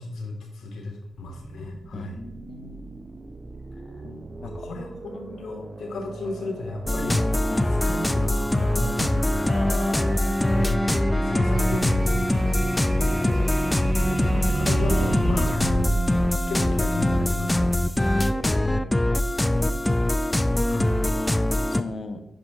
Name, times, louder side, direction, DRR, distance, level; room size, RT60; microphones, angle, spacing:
voice 1, 0.0-2.1 4.4-7.3 7.8-9.7 10.5-10.9 11.2-16.0 16.5-18.3 20.7-21.0, left 2 dB, 75° left, 2 dB, 1.6 m, -33 dB
sound 1, 1.1-17.4, right 3 dB, 35° right, 0.7 m, -34 dB
voice 2, 1.9-2.9 4.0-4.7 5.3-5.4 7.5-7.7 9.5-10.5 13.2-14.0 18.2-19.1 19.5-20.1 21.7-22.2, left 3 dB, 55° left, 6 dB, 1.1 m, -39 dB
sound 2, 6.9-21.8, left 1 dB, 15° left, 0.5 m, -23 dB
9.9 x 5.1 x 3.6 m, 0.82 s
supercardioid pair, 45°, 0 cm